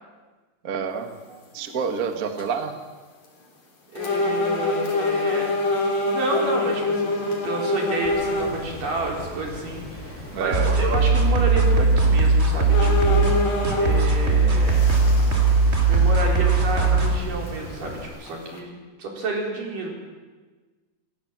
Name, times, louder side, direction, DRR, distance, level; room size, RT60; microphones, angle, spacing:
voice 1, 0.6-1.1 1.5-2.7 10.3-10.8, right 6 dB, 35° right, 6 dB, 1.5 m, -28 dB
sound 1, 1.6-1.7 2.2-2.6 3.2-3.3 4.0-8.6 9.2-9.3 11.7-11.8 12.3-12.4 12.7-14.1 14.6-16.4 16.7-16.8 17.5-17.6 18.2-18.6, left 2 dB, 60° left, 4.7 m, -25 dB
voice 2, 3.9-13.3 13.7-14.9 15.8-19.9, right 2 dB, 85° right, 0 dB, 5.9 m, -30 dB
Water, 8.0-18.0, left 1 dB, 10° left, 5.8 m, -39 dB
sound 2, 10.5-17.2, right 3 dB, 20° right, 2.5 m, -19 dB
28.5 x 17.0 x 7.5 m, 1.3 s
omnidirectional pair, 3.7 m